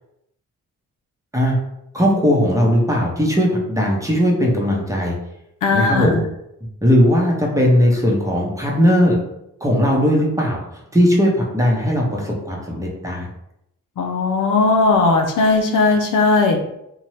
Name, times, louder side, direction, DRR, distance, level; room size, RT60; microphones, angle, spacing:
voice 1, 1.9-5.1 5.7-6.2 6.8-9.2 9.6-10.6 10.9-13.3, equal, 10° right, -2 dB, 0.8 m, -18 dB
voice 2, 5.6-6.2 14.0-16.6, left 3 dB, 70° left, 3 dB, 0.5 m, -17 dB
2.7 x 2.2 x 3.1 m, 0.82 s
cardioid pair, 60°, 33 cm